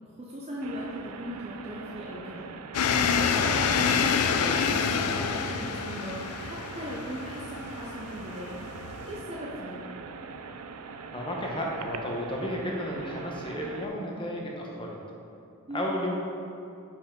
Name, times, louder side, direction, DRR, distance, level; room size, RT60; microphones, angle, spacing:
voice 1, 0.2-2.5 2.9-8.6 9.0-9.8 15.7-15.9, equal, 30° right, -4 dB, 0.7 m, -38 dB
sound 1, 0.6-13.9, right 5 dB, 85° right, 0.4 m, -42 dB
sound 2, 2.7-9.2, left 6 dB, 85° left, 0.4 m, -27 dB
voice 2, 11.1-15.0 15.7-16.2, equal, 25° left, -1 dB, 1.0 m, -32 dB
5.6 x 5.3 x 5.2 m, 2.6 s
head